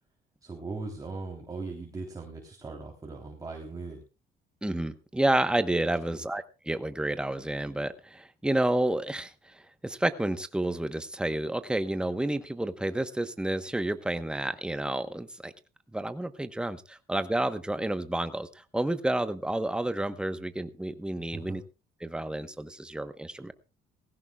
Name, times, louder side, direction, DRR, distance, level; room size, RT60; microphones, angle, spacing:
voice 1, 0.4-4.0 6.1-6.2 21.3-21.6, right 3 dB, 20° right, 0 dB, 3.5 m, -39 dB
voice 2, 4.6-15.5 15.9-21.6 22.0-23.5, right 1 dB, 5° right, 10 dB, 1.1 m, -30 dB
19.5 x 16.5 x 2.4 m, 0.31 s
cardioid pair, 110°, 17 cm